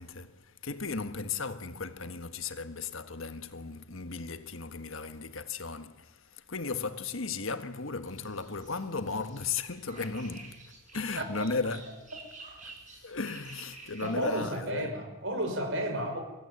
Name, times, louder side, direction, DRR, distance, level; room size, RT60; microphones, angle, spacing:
voice 1, 0.0-12.0 12.6-12.7 13.0-15.0, left 4 dB, 65° left, 1.5 m, -36 dB
sound 1, 8.1-14.4, right 3 dB, 35° right, 6.8 m, -50 dB
voice 2, 14.0-16.2, right 1 dB, 60° right, 5.6 m, -32 dB
24.0 x 16.0 x 9.8 m
head